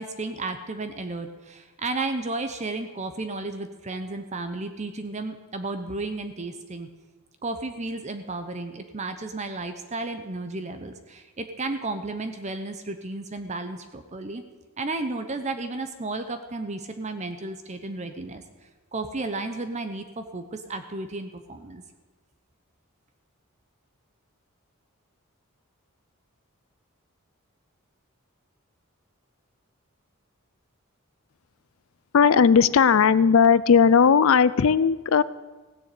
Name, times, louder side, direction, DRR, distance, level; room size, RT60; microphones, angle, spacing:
voice 1, 0.0-6.9 7.4-14.4 14.8-18.4 18.9-21.8, right 2 dB, 35° right, 8 dB, 0.8 m, -33 dB
voice 2, 32.1-35.2, left 6 dB, 70° left, 17 dB, 0.5 m, -17 dB
16.5 x 7.2 x 8.4 m, 1.2 s
head